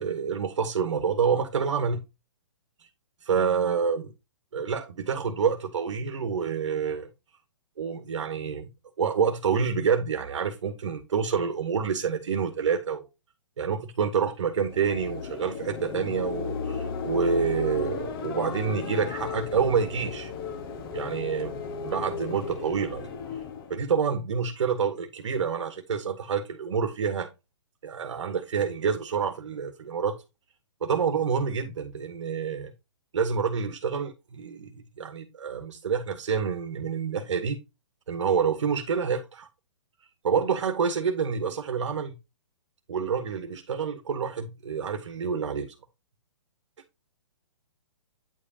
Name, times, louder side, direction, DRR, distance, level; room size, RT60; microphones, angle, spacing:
voice 1, 0.0-2.0 3.2-4.1 4.5-7.1 7.8-8.7 9.0-13.1 13.6-20.3 20.9-23.1 23.7-27.3 27.8-30.2 30.8-32.7 33.1-37.6 38.1-39.5 40.2-42.1 42.9-45.7, right 6 dB, 70° right, 1.1 m, -28 dB
sound 1, 14.5-23.8, left 5 dB, 50° left, 1.4 m, -35 dB
9.3 x 5.1 x 2.8 m
hypercardioid pair, 135°, 16 cm